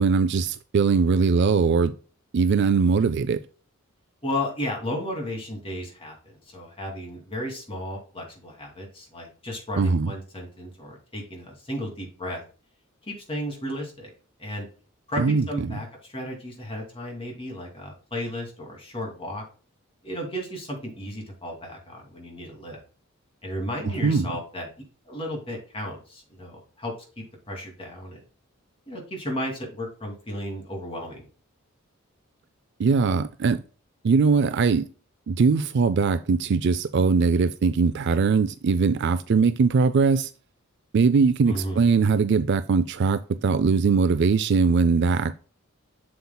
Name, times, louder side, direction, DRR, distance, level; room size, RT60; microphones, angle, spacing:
voice 1, 0.0-1.9 2.3-3.4 9.8-10.1 15.2-15.8 24.0-24.3 32.8-33.6 34.0-34.9 35.3-40.3 40.9-45.3, right 5 dB, 55° right, 0.4 m, -21 dB
voice 2, 4.2-6.2 6.5-12.4 13.0-14.1 14.4-14.7 15.1-19.4 20.0-22.8 23.4-24.7 25.0-28.2 28.9-31.3 41.5-41.9, left 1 dB, 25° left, 2.5 m, -34 dB
7.7 x 7.1 x 2.2 m
head